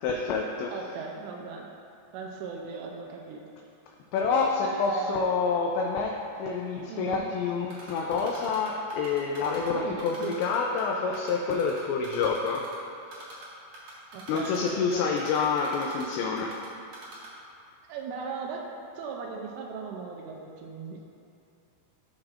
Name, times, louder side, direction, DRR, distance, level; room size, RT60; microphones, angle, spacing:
voice 1, 0.0-0.7 4.1-12.6 13.1-13.3 14.3-16.5, left 5 dB, 85° left, 0 dB, 2.6 m, -28 dB
voice 2, 0.7-1.7 2.1-3.4 4.6-5.3 6.9-7.2 9.7-10.4 14.1-15.1 17.9-18.6 19.0-21.0, right 5 dB, 85° right, 0 dB, 3.1 m, -37 dB
Typing, 7.7-9.7 10.0-10.8 11.1-12.7 13.1-13.5 13.7-16.7 16.9-17.3, right 2 dB, 55° right, 2.1 m, -44 dB
14.5 x 6.2 x 2.5 m, 2.6 s
omnidirectional pair, 5.6 m